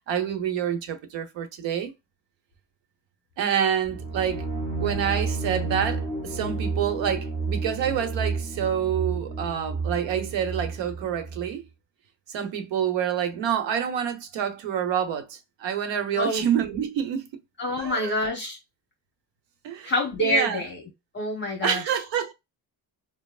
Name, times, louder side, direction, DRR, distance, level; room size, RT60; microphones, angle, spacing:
voice 1, 0.1-1.9 3.4-4.4 4.8-11.6 12.3-17.3 17.8-18.1 19.6-19.9 20.2-20.6 21.6-22.3, right 9 dB, 85° right, 0.9 m, -27 dB
sound 1, 3.9-11.6, right 3 dB, 20° right, 0.6 m, -31 dB
voice 2, 16.1-16.5 17.6-18.6 19.8-20.8 21.1-21.8, left 1 dB, 25° left, 1.0 m, -26 dB
5.3 x 2.0 x 2.4 m
cardioid pair, 150°, 43 cm